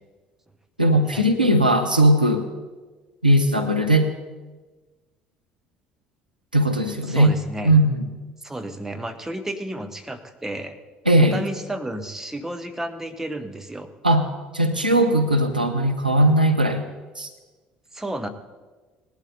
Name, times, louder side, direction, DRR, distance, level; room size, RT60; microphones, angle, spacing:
voice 1, 0.8-2.5 3.2-4.1 6.5-7.4 7.6-8.0 11.1-11.4 14.0-14.3 14.5-16.8 17.2-17.3, right 1 dB, 85° right, 6 dB, 0.7 m, -18 dB
voice 2, 7.1-7.7 8.4-10.8 11.3-13.9 17.9-18.3, right 1 dB, 10° right, 8 dB, 1.1 m, -32 dB
19.0 x 11.5 x 4.0 m, 1.3 s
figure-of-eight pair, 55°, 5 cm